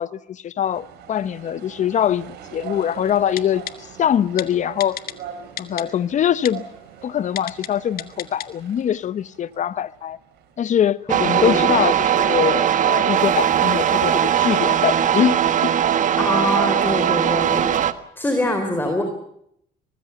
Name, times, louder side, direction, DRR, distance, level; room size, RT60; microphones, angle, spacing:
voice 1, 0.0-3.6 4.0-5.0 5.6-6.6 7.0-10.2 10.6-15.4 15.6-15.7, left 9 dB, 45° left, 0.9 m, -23 dB
sound 1, 0.6-17.6, right 8 dB, 80° right, 4.6 m, -43 dB
Typing, 3.4-3.7 4.4-4.5 4.8-5.1 5.6-5.8 6.4-6.5 7.4-7.7 8.0-8.5 8.8-8.9, left 12 dB, 60° left, 1.6 m, -30 dB
sound 2, 11.1-17.9, right 9 dB, 50° right, 1.5 m, -19 dB
voice 2, 11.4-11.8 16.2-17.7 18.2-19.0, left 1 dB, 10° left, 4.1 m, -23 dB
24.0 x 20.0 x 7.0 m
cardioid pair, 110°, 17 cm